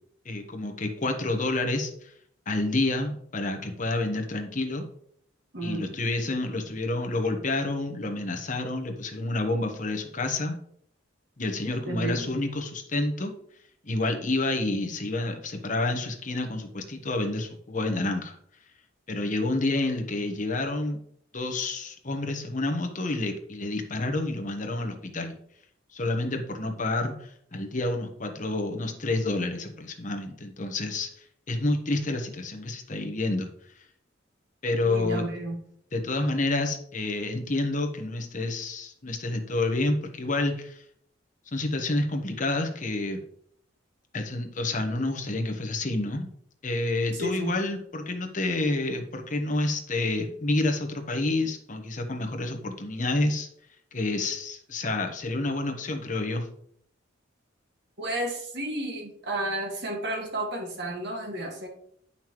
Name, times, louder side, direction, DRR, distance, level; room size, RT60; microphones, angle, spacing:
voice 1, 0.2-2.1 2.5-4.9 5.6-10.6 11.4-13.3 13.8-18.4 19.1-21.0 21.3-25.3 25.9-31.1 31.5-33.5 34.6-35.2 35.9-40.8 41.5-43.2 44.1-46.3 46.6-53.5 53.9-56.5, left 2 dB, 40° left, 4 dB, 1.1 m, -29 dB
voice 2, 5.5-5.9 11.9-12.4 34.9-35.6 47.1-47.5 58.0-61.7, right 1 dB, 60° right, 1 dB, 1.8 m, -32 dB
9.2 x 5.7 x 3.1 m, 0.66 s
head